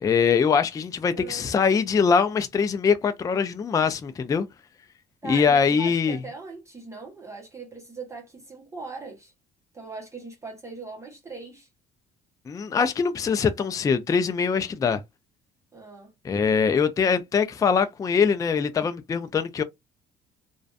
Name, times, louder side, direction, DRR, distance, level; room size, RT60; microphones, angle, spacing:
voice 1, 0.0-4.5 5.2-6.2 12.5-15.0 16.2-19.6, left 6 dB, 20° left, 0.3 m, -23 dB
voice 2, 1.1-1.5 5.2-9.3 9.7-11.7 15.7-16.1, right 3 dB, 15° right, 0.8 m, -40 dB
2.4 x 2.2 x 2.3 m
cardioid pair, 110°, 17 cm